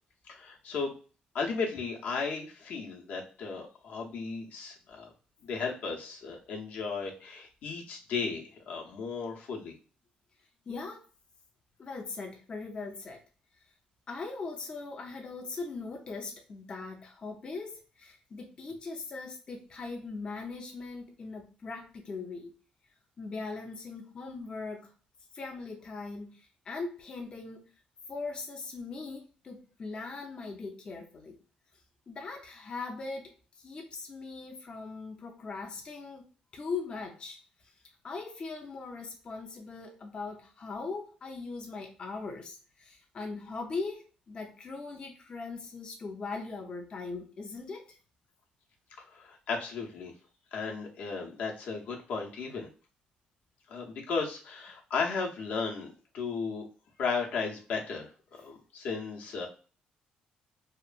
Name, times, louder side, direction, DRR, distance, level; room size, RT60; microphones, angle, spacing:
voice 1, 0.3-0.9 1.3-5.1 5.4-9.7 49.1-50.1 50.5-52.7 53.7-56.7 57.0-59.5, left 4 dB, 75° left, -1 dB, 0.7 m, -35 dB
voice 2, 10.7-11.1 11.8-13.2 14.1-22.5 23.2-24.9 25.3-27.7 28.1-31.4 32.1-33.3 33.6-36.2 36.5-37.4 37.6-37.7 38.0-48.0, left 4 dB, 35° left, 2 dB, 0.4 m, -40 dB
2.9 x 2.2 x 2.4 m, 0.37 s
cardioid pair, 115°, 3 cm